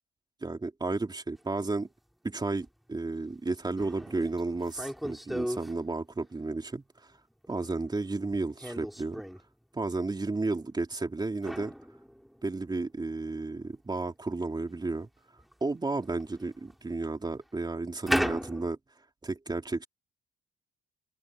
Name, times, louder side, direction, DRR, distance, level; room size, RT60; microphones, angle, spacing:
voice 1, 0.4-1.9 2.2-6.8 7.5-9.2 9.7-11.7 12.4-15.1 15.6-18.8 19.2-19.9, right 3 dB, 20° right, 3.2 m, -32 dB
sound 1, 1.4-1.5 2.6-2.7 3.1-3.2 3.8-5.7 7.1-7.8 8.6-9.4 11.4-12.9 13.1-13.2 14.6-14.7 15.4-15.5 16.0-16.9 18.1-18.7, equal, ahead, 3.5 m, -35 dB
cardioid pair, 90°, 20 cm